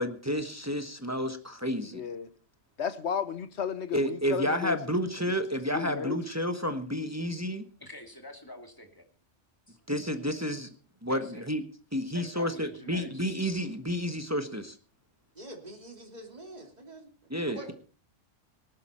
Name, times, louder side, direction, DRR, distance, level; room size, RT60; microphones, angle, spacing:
voice 1, 0.0-2.0 3.9-7.6 9.9-10.7 11.0-11.6 11.9-14.8 17.3-17.7, equal, 15° right, 1.2 m, -30 dB
voice 2, 1.9-2.3 2.8-4.8 5.7-6.2, left 7 dB, 65° left, 1.3 m, -33 dB
voice 3, 7.8-9.1 9.7-9.8 11.1-11.5 12.1-13.3 17.5-17.7, left 1 dB, 15° left, 2.5 m, -46 dB
voice 4, 15.3-17.1 17.4-17.7, right 1 dB, 35° right, 3.2 m, -45 dB
19.0 x 11.5 x 4.4 m
omnidirectional pair, 1.2 m